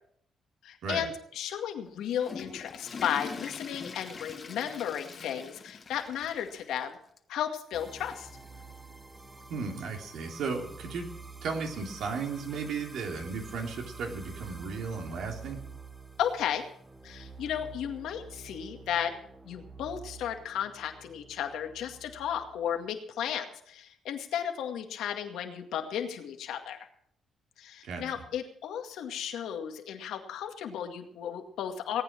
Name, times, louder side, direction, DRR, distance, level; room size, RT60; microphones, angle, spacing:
voice 1, 0.6-7.0 7.3-8.3 16.2-16.6 17.0-19.1 19.4-26.9 27.6-32.0, left 9 dB, 85° left, 5 dB, 2.1 m, -34 dB
Water / Toilet flush, 1.9-6.9 7.2-7.3 8.0-8.1 9.4-9.5, left 5 dB, 40° left, 1.4 m, -43 dB
sound 1, 7.7-22.9, right 4 dB, 15° right, 1.3 m, -48 dB
voice 2, 9.5-11.1 11.4-15.6 27.8-28.0, right 4 dB, 75° right, 2 dB, 3.3 m, -35 dB
18.5 x 9.2 x 6.1 m, 0.67 s
cardioid pair, 90°, 0 cm